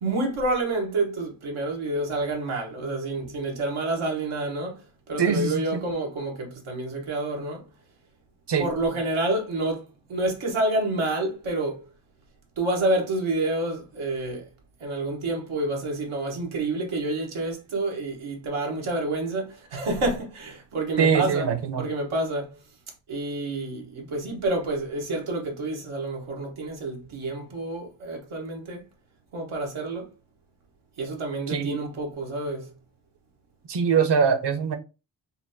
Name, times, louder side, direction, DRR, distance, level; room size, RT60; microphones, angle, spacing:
voice 1, 0.0-7.7 8.6-11.8 12.6-14.5 14.8-21.5 21.8-22.6 23.1-28.8 29.3-30.1 31.0-32.7, right 2 dB, 90° right, 1.2 m, -28 dB
voice 2, 5.2-5.6 8.5-8.7 21.0-21.8 31.5-31.8 33.7-34.8, right 6 dB, 60° right, 0.9 m, -22 dB
5.5 x 2.2 x 2.7 m
cardioid pair, 45°, 47 cm